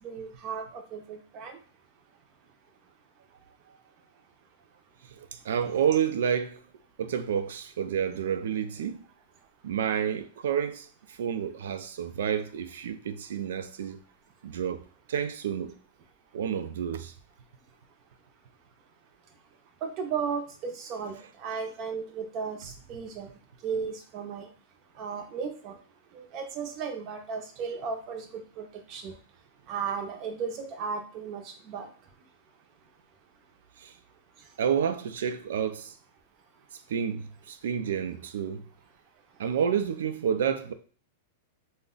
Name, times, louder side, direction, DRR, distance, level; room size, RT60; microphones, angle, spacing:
voice 1, 0.0-1.6 19.8-23.3 23.6-24.5 25.0-25.8 26.1-29.1 29.7-31.9, right 6 dB, 30° right, 0.5 m, -35 dB
voice 2, 5.1-6.6 7.0-9.0 9.6-14.0 14.4-14.8 15.1-15.7 16.3-17.1 33.8-33.9 34.6-35.9 36.9-38.7 39.4-40.7, right 8 dB, 80° right, 0.4 m, -29 dB
2.4 x 2.1 x 3.7 m
supercardioid pair, 170°, 0 cm